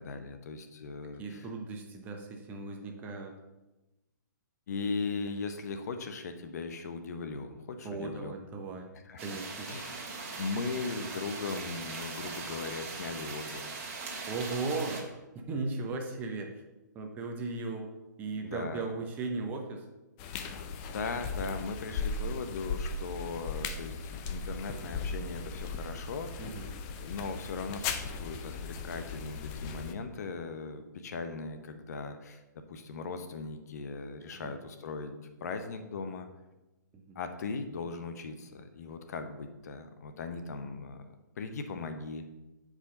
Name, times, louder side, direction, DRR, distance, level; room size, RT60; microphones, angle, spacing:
voice 1, 0.0-1.5 4.7-8.3 8.9-9.4 9.6-10.1 10.4-13.8 18.4-18.8 20.9-26.5 27.0-32.4 32.7-36.3 37.1-42.3, left 4 dB, 55° left, 7 dB, 0.8 m, -38 dB
voice 2, 1.2-3.4 7.8-8.9 9.2-9.7 14.3-15.1 15.5-16.5 16.9-17.9 18.2-19.8 26.4-26.7 34.3-34.6 36.9-37.2, right 3 dB, 15° right, 2 dB, 0.7 m, -37 dB
sound 1, 9.2-15.0, right 4 dB, 40° right, 1.4 m, -40 dB
sound 2, 20.2-29.9, left 4 dB, 25° left, 0.5 m, -37 dB
8.2 x 5.0 x 3.8 m, 1.0 s
hypercardioid pair, 145°, 10 cm